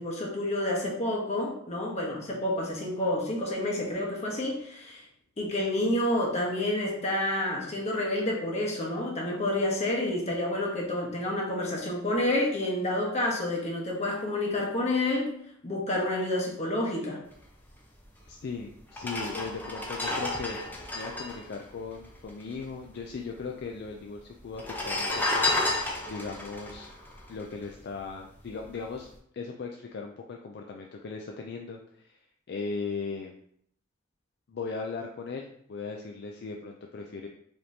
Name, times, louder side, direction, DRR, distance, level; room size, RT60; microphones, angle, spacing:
voice 1, 0.0-5.0 5.4-15.3 15.6-17.2, left 1 dB, 35° left, -2 dB, 1.0 m, -29 dB
sound 1, 18.2-18.3 18.9-22.6 22.8-22.9 23.1-23.8 24.5-28.0 28.4-28.6, left 2 dB, 10° left, 0.6 m, -31 dB
voice 2, 18.3-26.9 27.3-29.1 29.3-33.3 34.5-37.3, left 4 dB, 55° left, 2 dB, 0.4 m, -38 dB
5.0 x 3.0 x 2.7 m, 0.68 s
head